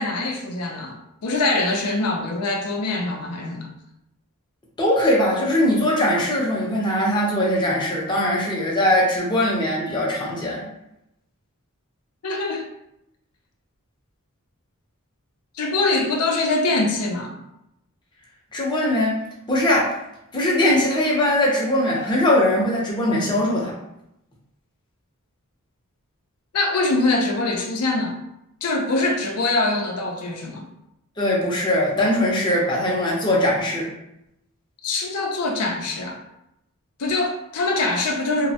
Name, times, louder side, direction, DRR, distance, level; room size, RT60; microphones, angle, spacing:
voice 1, 0.0-3.7 12.2-12.7 15.5-17.4 26.5-28.2 28.6-30.6 34.8-36.2 37.0-38.5, left 2 dB, 85° left, 2 dB, 0.5 m, -23 dB
voice 2, 4.8-10.6 18.5-19.1 19.5-19.9 20.3-23.7 31.2-33.9, left 1 dB, 20° left, -4 dB, 0.6 m, -21 dB
3.1 x 2.1 x 2.7 m, 0.83 s
head